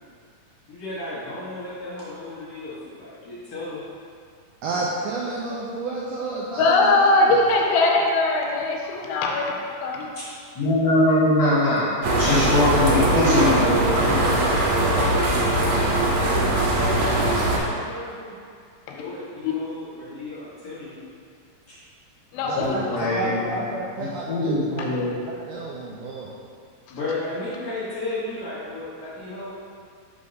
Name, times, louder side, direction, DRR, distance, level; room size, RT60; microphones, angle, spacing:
voice 1, 0.7-3.8 10.1-10.3 12.7-18.3 18.9-21.0 21.7-21.8 22.7-23.6 26.9-29.5, left 2 dB, 50° left, -11 dB, 1.2 m, -34 dB
voice 2, 4.6-7.4 22.4-22.9 23.1-26.3, right 2 dB, 90° right, -4 dB, 1.8 m, -31 dB
voice 3, 6.6-9.5 9.8-10.1 11.5-11.6 19.4-19.5 22.3-22.8, left 2 dB, 85° left, 0 dB, 2.5 m, -20 dB
voice 4, 10.6-13.8 14.1-14.2 22.5-23.6 24.3-25.2, left 1 dB, 70° left, -9 dB, 1.7 m, -22 dB
sound 1, 12.0-17.6, right 1 dB, 75° right, 2.2 m, -21 dB
5.6 x 3.4 x 5.3 m, 2.2 s
omnidirectional pair, 4.3 m